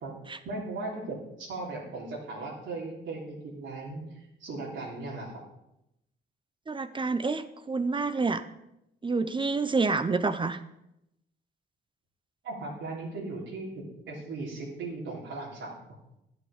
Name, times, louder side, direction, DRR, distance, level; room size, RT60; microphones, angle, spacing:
voice 1, 0.4-5.3 12.4-15.8, right 3 dB, 75° right, -4 dB, 3.4 m, -37 dB
voice 2, 6.7-8.4 9.0-10.6, right 4 dB, 25° right, 12 dB, 0.7 m, -28 dB
11.0 x 7.0 x 6.6 m, 0.84 s
cardioid pair, 90°, 20 cm